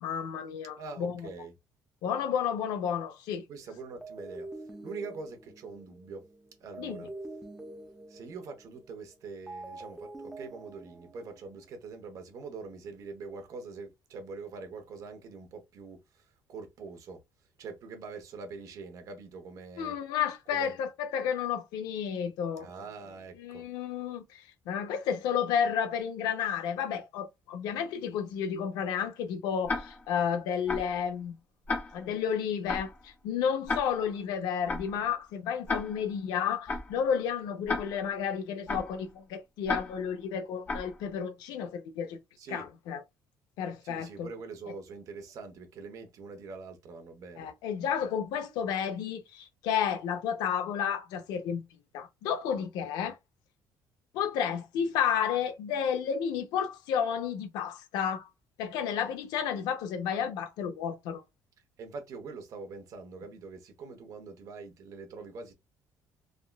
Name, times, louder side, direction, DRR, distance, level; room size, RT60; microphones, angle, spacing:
voice 1, 0.0-1.3 2.0-3.4 6.8-7.1 19.8-22.7 23.4-31.4 31.9-42.2 42.5-43.0 43.6-44.3 47.4-51.6 51.9-53.2 54.1-58.3 58.6-61.2, left 8 dB, 90° left, 0.6 m, -31 dB
voice 2, 0.8-1.5 3.5-6.3 6.6-7.1 8.1-17.2 17.6-20.0 20.5-20.8 22.6-23.7 42.4-42.7 43.8-47.5 61.8-65.5, right 4 dB, 55° right, 0.9 m, -44 dB
sound 1, 4.0-11.7, right 2 dB, 10° right, 0.7 m, -46 dB
Tick-tock, 29.7-30.2 30.7-31.0 31.7-32.2 32.7-33.0 33.7-34.2 34.7-35.0 35.7-36.2 36.7-37.0 37.7-38.2 38.7-39.0 39.7-40.2 40.7-41.0, left 3 dB, 25° left, 0.8 m, -34 dB
3.5 x 2.2 x 2.2 m
cardioid pair, 130°, 7 cm